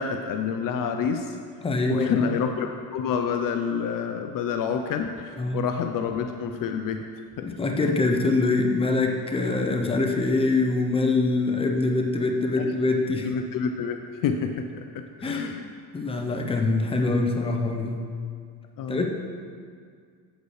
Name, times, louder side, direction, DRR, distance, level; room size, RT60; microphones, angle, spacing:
voice 1, 0.0-1.4 1.9-7.0 7.4-7.5 12.6-12.7 13.2-14.8 15.2-15.6 18.8-19.0, left 6 dB, 55° left, 6 dB, 0.6 m, -28 dB
voice 2, 1.6-2.4 5.4-5.6 7.4-13.3 15.2-15.6 15.9-18.0 18.9-19.1, left 3 dB, 15° left, 3 dB, 0.8 m, -24 dB
8.0 x 7.7 x 3.2 m, 2.1 s
supercardioid pair, 95°, 40 cm